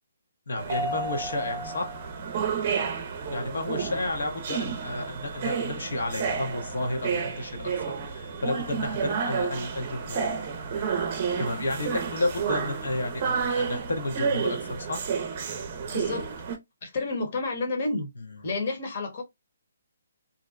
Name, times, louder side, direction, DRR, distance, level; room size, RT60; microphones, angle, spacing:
voice 1, 0.5-1.9 3.3-10.2 11.4-15.0, left 2 dB, 75° left, 0.9 m, -31 dB
sound 1, 0.6-16.6, right 6 dB, 35° right, 0.6 m, -31 dB
voice 2, 15.9-16.3 16.8-18.1 18.4-19.2, left 3 dB, 45° left, 1.1 m, -30 dB
2.6 x 2.1 x 2.4 m
hypercardioid pair, 155°, 0 cm